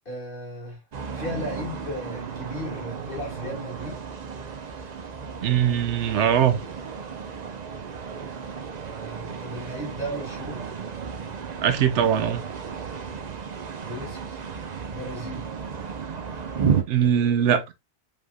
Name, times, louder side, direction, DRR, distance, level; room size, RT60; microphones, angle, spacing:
voice 1, 0.1-0.8 1.1-4.0 8.9-10.7 13.8-14.4 14.9-15.5, equal, 40° left, 2.3 m, -35 dB
sound 1, 0.9-16.8, right 6 dB, 45° right, 0.6 m, -33 dB
voice 2, 5.4-6.6 11.6-12.4 16.9-17.6, right 9 dB, 65° right, 0.9 m, -21 dB
5.1 x 3.5 x 2.2 m
omnidirectional pair, 1.4 m